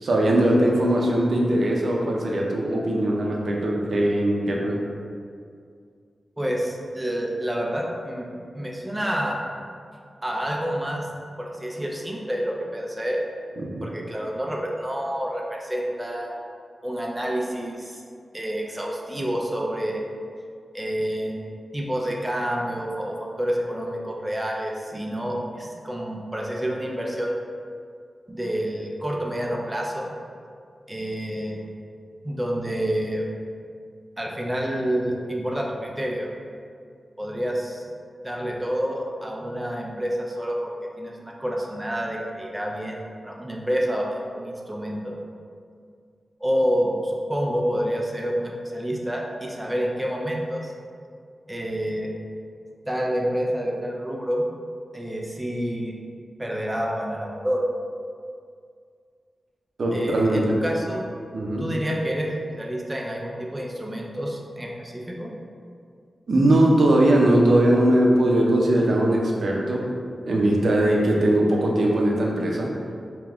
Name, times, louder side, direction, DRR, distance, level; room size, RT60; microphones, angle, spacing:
voice 1, 0.0-4.8 13.6-13.9 59.8-60.5 61.3-61.7 66.3-69.9 70.3-72.7, right 1 dB, 65° right, -2 dB, 0.6 m, -20 dB
voice 2, 6.4-8.3 8.5-9.4 10.2-11.1 11.4-13.2 13.8-16.4 16.8-18.0 18.3-20.0 20.7-21.5 21.7-27.3 28.3-30.1 30.9-31.7 32.2-33.2 34.2-36.3 37.2-37.9 38.2-45.2 46.4-50.7 51.5-52.1 52.9-54.5 54.9-55.9 56.4-57.6 59.9-61.0 61.6-65.3, equal, 10° right, -1 dB, 0.5 m, -28 dB
3.5 x 2.9 x 3.5 m, 2.2 s
wide cardioid pair, 120°, 0 cm